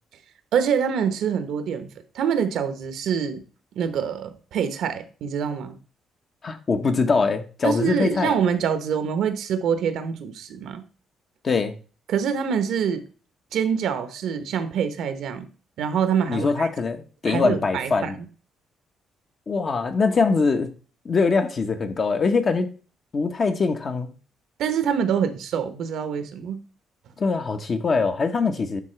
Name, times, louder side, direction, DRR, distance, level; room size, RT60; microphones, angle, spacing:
voice 1, 0.5-1.9 2.1-3.4 3.8-5.8 7.6-10.8 12.1-13.0 13.5-15.5 15.8-16.7 17.2-18.1 24.6-26.6, right 7 dB, 75° right, 1.0 m, -25 dB
voice 2, 6.4-8.4 11.4-11.8 16.3-18.2 19.5-20.7 21.0-22.7 23.1-24.1 27.2-28.8, left 4 dB, 45° left, 1.1 m, -23 dB
10.5 x 3.8 x 3.3 m
supercardioid pair, 70°, 0 cm